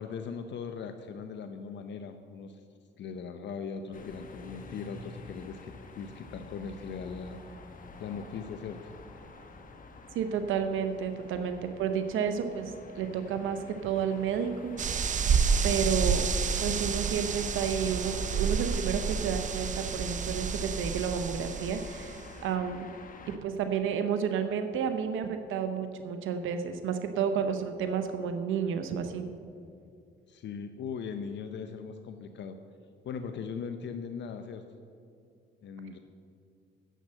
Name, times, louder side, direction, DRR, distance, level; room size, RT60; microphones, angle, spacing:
voice 1, 0.0-2.6 3.0-7.4 8.0-8.9 30.3-32.6 33.0-34.6 35.6-36.0, left 6 dB, 65° left, 7 dB, 0.7 m, -39 dB
sound 1, 3.9-23.4, left 3 dB, 45° left, 1.3 m, -48 dB
voice 2, 10.1-14.7 15.0-15.3 15.6-16.3 16.6-22.9 23.4-29.2, right 7 dB, 80° right, 8 dB, 0.7 m, -31 dB
sound 2, 14.8-22.3, right 6 dB, 40° right, 0.6 m, -30 dB
9.2 x 7.7 x 7.5 m, 2.5 s
cardioid pair, 90°, 20 cm